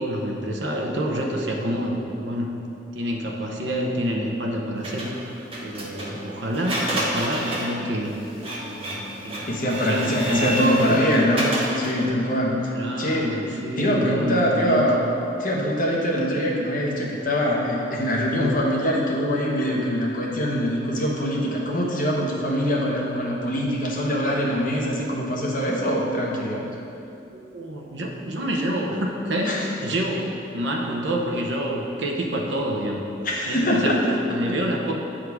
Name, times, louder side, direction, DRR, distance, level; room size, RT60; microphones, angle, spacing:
voice 1, 0.0-2.5 2.9-8.2 8.6-11.0 12.7-14.9 27.3-33.0 33.5-34.0 34.3-34.9, equal, 70° right, 0 dB, 0.8 m, -28 dB
Printer, 4.8-12.1, right 1 dB, 30° right, 0.9 m, -30 dB
voice 2, 9.5-12.7 13.0-13.3 13.8-15.0 15.4-26.6 29.5-29.6 33.2-34.2, equal, 45° left, -2 dB, 1.0 m, -23 dB
8.2 x 3.7 x 4.7 m, 2.8 s
head